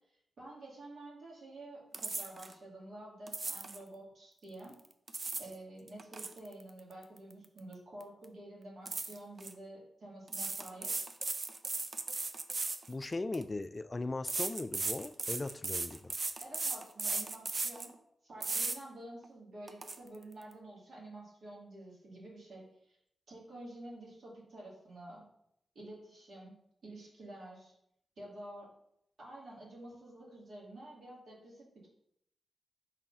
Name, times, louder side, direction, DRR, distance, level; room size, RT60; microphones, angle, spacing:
voice 1, 0.1-4.7 5.4-10.9 16.4-18.0 18.2-23.0 23.3-25.2 25.7-26.5 26.8-27.7 28.2-28.7 29.2-31.9, right 1 dB, 70° right, -5 dB, 2.6 m, -49 dB
sprayer watering plant, 1.9-2.5 3.3-3.8 4.8-5.5 5.9-7.7 8.0-8.2 8.9-9.5 10.3-13.4 14.3-17.9 18.4-18.8 19.2-19.3 19.7-20.0, right 3 dB, 50° right, 0.6 m, -37 dB
voice 2, 12.9-16.1, left 2 dB, 35° left, 14 dB, 0.3 m, -38 dB
4.8 x 3.8 x 5.6 m, 0.75 s
cardioid pair, 50°, 0 cm